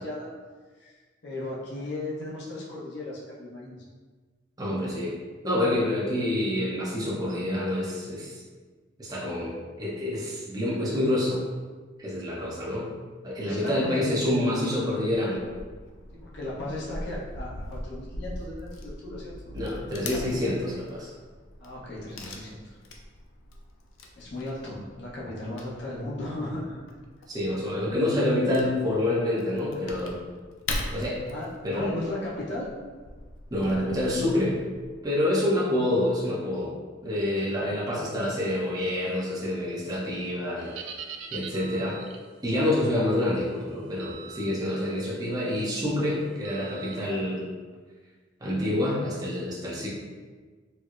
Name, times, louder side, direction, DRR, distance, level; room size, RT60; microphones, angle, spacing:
voice 1, 1.2-3.8 13.4-14.1 16.2-19.5 21.6-22.8 24.2-26.8 31.3-32.7, left 1 dB, 60° left, -6 dB, 0.8 m, -36 dB
voice 2, 4.6-5.2 5.4-8.4 9.0-11.4 12.0-12.9 13.2-15.4 19.5-21.1 27.3-30.2 30.9-31.2 31.6-32.0 33.5-34.6 35.0-36.7 37.0-40.7 41.3-42.0 42.4-47.5 48.4-49.9, left 1 dB, 20° right, -7 dB, 0.6 m, -27 dB
Wood / Tearing, 15.4-35.0, left 2 dB, 90° left, 0.4 m, -41 dB
sound 1, 40.6-42.3 44.0-44.5 45.0-45.2 46.4-47.0, right 7 dB, 75° right, 0.3 m, -41 dB
4.3 x 2.0 x 2.4 m, 1.4 s
head